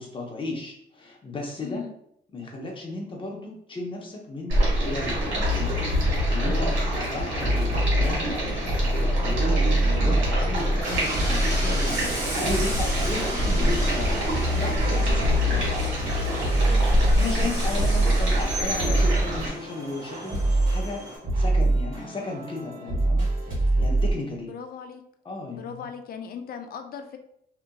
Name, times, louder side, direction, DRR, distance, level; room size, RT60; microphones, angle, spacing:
voice 1, 0.0-1.8 2.3-5.7 6.1-8.7 9.2-15.6 17.2-21.0 21.4-23.3 23.6-24.5 25.2-25.7, left 2 dB, 25° left, 0 dB, 0.8 m, -34 dB
voice 2, 1.6-1.9 9.8-10.2 15.3-15.6 16.6-16.9 17.9-18.5 24.5-25.0 25.5-27.2, left 7 dB, 50° left, 6 dB, 0.4 m, -39 dB
Stream, 4.5-19.5, right 1 dB, 70° right, 1.3 m, -27 dB
sound 1, 5.4-7.1 7.4-24.1, right 1 dB, 45° right, 1.4 m, -25 dB
Train, 10.8-21.2, right 1 dB, 20° right, 1.1 m, -35 dB
2.8 x 2.5 x 2.2 m, 0.73 s
cardioid pair, 90°, 20 cm